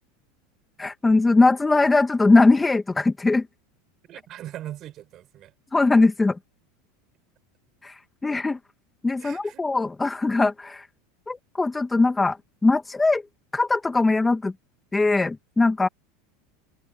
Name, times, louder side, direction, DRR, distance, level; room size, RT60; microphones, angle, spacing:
voice 1, 0.8-3.4 5.7-6.4 7.8-7.9 8.2-8.6 9.0-10.8 11.3-12.4 12.6-13.2 13.5-14.5 14.9-15.9, left 3 dB, 10° left, 1.4 m, -20 dB
voice 2, 4.1-5.5 9.2-9.7, right 12 dB, 45° right, 5.9 m, -40 dB
open air
supercardioid pair, 105°, 0 cm